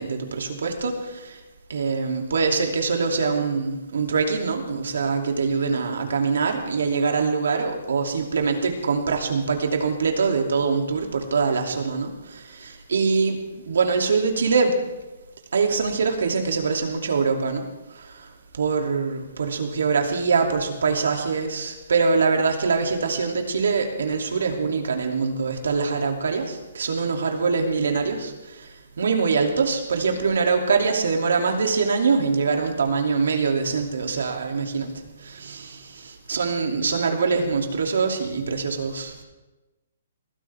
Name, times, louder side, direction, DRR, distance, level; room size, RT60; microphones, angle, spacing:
voice 1, 0.0-1.4 1.7-14.7 15.5-39.2, right 4 dB, 85° right, 3 dB, 2.7 m, -24 dB
21.0 x 15.0 x 3.5 m, 1.1 s
hypercardioid pair, 170°, 0 cm